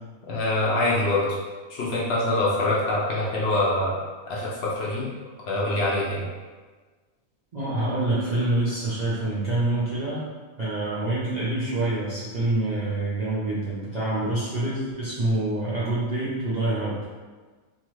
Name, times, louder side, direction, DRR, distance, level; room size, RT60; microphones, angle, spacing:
voice 1, 0.3-1.3 1.7-3.9 4.3-5.1 5.5-6.2, left 2 dB, 60° left, -5 dB, 0.8 m, -24 dB
voice 2, 7.5-10.3 10.6-17.0, right 2 dB, 50° right, -10 dB, 0.5 m, -26 dB
2.9 x 2.3 x 3.0 m, 1.4 s
omnidirectional pair, 1.4 m